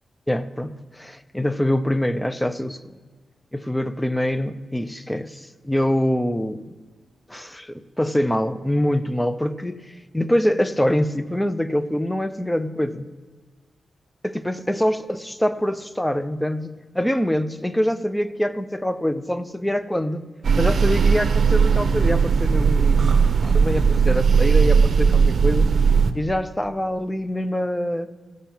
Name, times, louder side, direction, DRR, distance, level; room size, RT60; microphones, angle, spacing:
voice 1, 0.3-2.9 3.5-6.7 7.3-13.1 14.2-20.3 20.6-25.7 26.1-28.1, equal, 5° left, 0.5 m, -24 dB
sound 1, 20.4-26.1, right 5 dB, 65° right, 0.7 m, -18 dB
16.0 x 5.7 x 7.3 m
wide cardioid pair, 120°, 0 cm